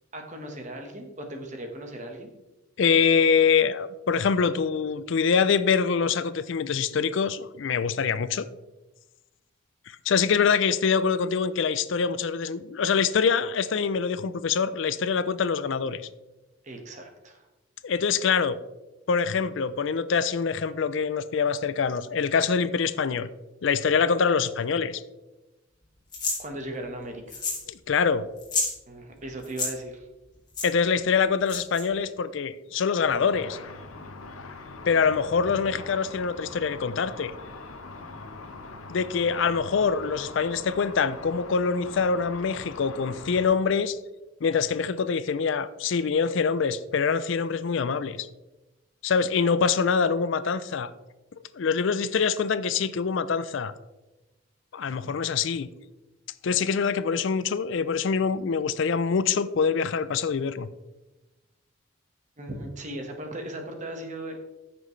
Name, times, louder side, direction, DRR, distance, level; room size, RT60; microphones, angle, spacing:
voice 1, 0.1-2.3 16.6-17.4 26.4-27.4 28.9-30.1 62.4-64.4, right 1 dB, 35° right, 3 dB, 1.3 m, -37 dB
voice 2, 2.8-8.5 9.9-16.0 17.8-18.6 19.1-23.3 23.6-25.0 27.7-28.3 30.6-33.6 34.9-37.3 38.9-44.0 44.4-48.3 49.0-50.9 51.5-53.7 54.7-55.7 56.4-60.7, left 6 dB, 60° left, 14 dB, 0.4 m, -25 dB
sound 1, 26.1-26.4 27.3-27.7 27.9-28.0 28.4-28.7 29.4-29.7 30.5-30.7 31.5-31.8, left 3 dB, 20° left, 2.4 m, -29 dB
Car / Traffic noise roadway noise / Engine, 33.0-43.5, left 3 dB, 85° left, 0.9 m, -42 dB
14.0 x 6.0 x 3.2 m, 1.1 s
head